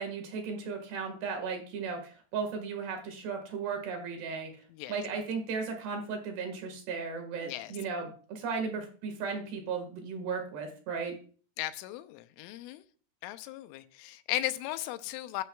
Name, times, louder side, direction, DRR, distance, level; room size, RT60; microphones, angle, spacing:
voice 1, 0.0-4.5 4.9-11.1, right 5 dB, 60° right, 5 dB, 3.6 m, -35 dB
voice 2, 11.6-12.8 13.2-15.4, left 14 dB, 80° left, 11 dB, 3.2 m, -36 dB
13.5 x 11.5 x 2.4 m, 0.41 s
omnidirectional pair, 5.8 m